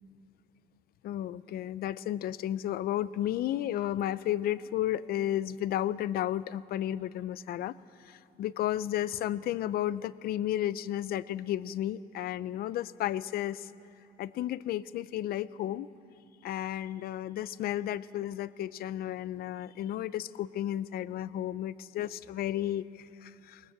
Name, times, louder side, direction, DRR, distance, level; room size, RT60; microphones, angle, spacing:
voice 1, 1.0-7.8 8.1-13.7 14.2-15.9 16.4-23.6, left 12 dB, 65° left, 18 dB, 0.5 m, -33 dB
21.0 x 19.0 x 7.4 m, 2.7 s
cardioid pair, 110°, 17 cm